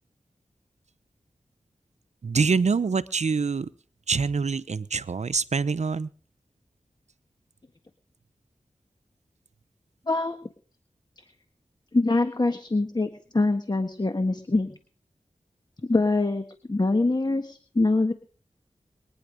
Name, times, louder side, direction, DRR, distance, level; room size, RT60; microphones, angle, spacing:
voice 1, 2.2-3.7 4.1-6.1, right 5 dB, 70° right, 15 dB, 0.9 m, -25 dB
voice 2, 10.1-10.4 11.9-14.7 15.9-18.1, left 2 dB, 35° left, 8 dB, 1.6 m, -24 dB
23.0 x 10.5 x 5.2 m, 0.42 s
cardioid pair, 50°, 12 cm